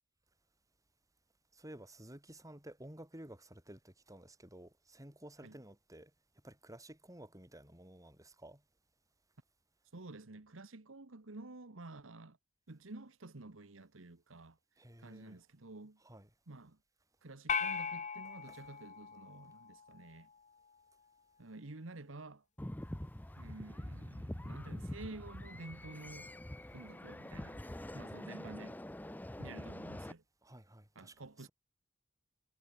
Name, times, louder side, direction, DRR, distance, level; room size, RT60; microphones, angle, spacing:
voice 1, 1.5-6.1 6.4-8.6 14.8-15.4 16.0-16.3 18.4-18.6 30.4-31.5, right 1 dB, 15° right, 7.5 m, -53 dB
voice 2, 9.9-12.4 12.7-14.6 15.0-16.0 16.5-16.8 17.2-20.3 21.4-22.4 23.4-26.3 26.7-27.6 27.9-28.8 29.4-30.2 30.9-31.5, right 2 dB, 80° right, 1.4 m, -50 dB
sound 1, 17.5-20.0, left 6 dB, 40° left, 1.6 m, -38 dB
sound 2, 22.6-30.1, left 1 dB, 10° left, 0.7 m, -45 dB
head